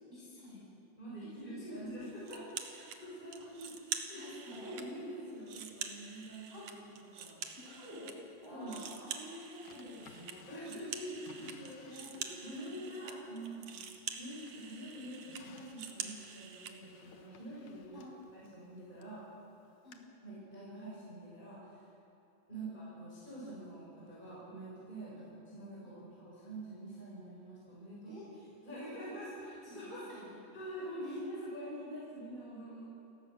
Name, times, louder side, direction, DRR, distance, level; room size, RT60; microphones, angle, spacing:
voice 1, 0.1-0.7 1.4-1.8 2.3-2.4 4.1-4.7 6.5-6.7 7.6-10.5 11.9-12.1 12.8-13.1 13.4-13.9 17.9-18.1 19.8-20.1 22.5-22.7 25.2-25.3 25.8-25.9 28.0-28.5 29.4-30.4 31.0-31.2, left 1 dB, 5° right, -8 dB, 6.9 m, -50 dB
voice 2, 1.0-3.7 4.1-4.3 4.5-7.4 8.5-8.8 10.5-12.1 12.4-13.6 14.1-18.0 18.3-19.2 20.2-21.8 22.5-28.1 28.6-30.1 30.5-32.9, right 1 dB, 10° left, -7 dB, 6.4 m, -46 dB
sound 1, 2.2-3.0 3.3-4.9 5.2-8.1 8.4-16.7, right 7 dB, 65° right, 1.8 m, -45 dB
Drawer open or close, 9.6-12.6 13.0-14.1 14.5-19.2 19.9-20.0, left 6 dB, 70° left, 1.7 m, -59 dB
29.5 x 15.5 x 6.4 m, 2.9 s
omnidirectional pair, 4.7 m